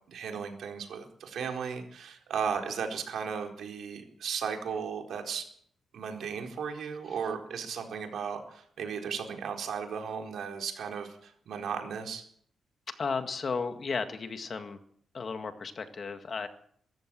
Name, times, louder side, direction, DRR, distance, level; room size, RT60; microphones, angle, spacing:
voice 1, 0.1-5.5 5.9-12.2, right 6 dB, 70° right, 3 dB, 4.3 m, -35 dB
voice 2, 13.0-14.8 15.1-16.5, left 5 dB, 40° left, 8 dB, 1.9 m, -34 dB
24.0 x 14.0 x 7.7 m, 0.64 s
wide cardioid pair, 140°, 0 cm